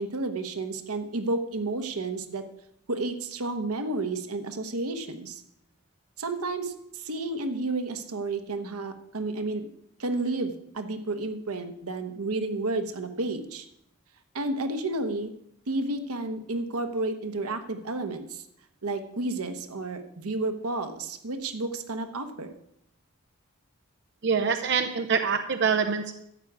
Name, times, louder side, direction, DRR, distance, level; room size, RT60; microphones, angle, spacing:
voice 1, 0.0-2.4 2.9-5.4 6.2-9.7 10.0-13.7 14.3-15.3 15.7-18.4 18.8-22.5, right 2 dB, 85° right, 8 dB, 1.1 m, -31 dB
voice 2, 24.2-26.2, right 6 dB, 50° right, 7 dB, 0.6 m, -25 dB
12.0 x 4.7 x 8.6 m, 0.76 s
head